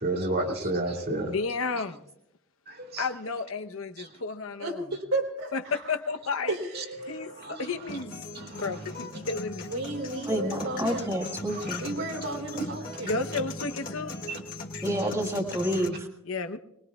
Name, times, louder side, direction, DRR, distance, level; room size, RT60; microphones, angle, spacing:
voice 1, 0.0-1.3 2.7-3.0 6.7-7.6 8.3-8.7 14.3-14.4, right 2 dB, 45° right, 1 dB, 2.4 m, -31 dB
voice 2, 1.3-2.0 3.0-4.8 5.5-6.5 7.1-8.1 8.5-9.7 13.0-14.2 16.2-16.6, left 4 dB, 85° left, 8 dB, 1.0 m, -32 dB
voice 3, 4.6-5.9 6.5-7.1 9.7-11.2 11.8-13.2, right 2 dB, 85° right, 1 dB, 3.5 m, -33 dB
sound 1, 7.9-15.9, left 2 dB, 40° left, 2.1 m, -38 dB
voice 4, 10.3-11.8 14.8-16.1, equal, 15° right, 2 dB, 1.6 m, -29 dB
24.5 x 20.5 x 2.4 m, 0.80 s
head